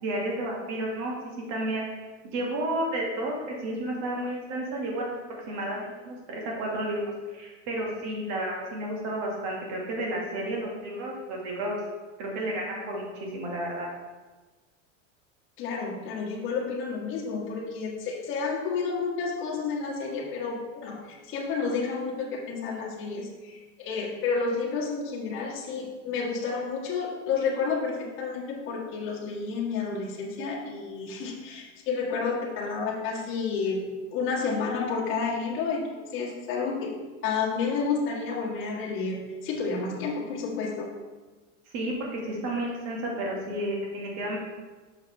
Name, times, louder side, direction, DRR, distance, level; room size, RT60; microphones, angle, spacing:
voice 1, 0.0-1.2 1.5-1.8 2.3-5.1 5.5-7.0 7.3-11.8 12.2-13.1 13.3-13.9 41.7-44.4, right 1 dB, 40° right, -1 dB, 1.8 m, -31 dB
voice 2, 15.6-33.8 34.1-36.9 37.2-40.9, left 5 dB, 30° left, -4 dB, 1.4 m, -30 dB
6.4 x 5.8 x 3.3 m, 1.3 s
supercardioid pair, 155°, 38 cm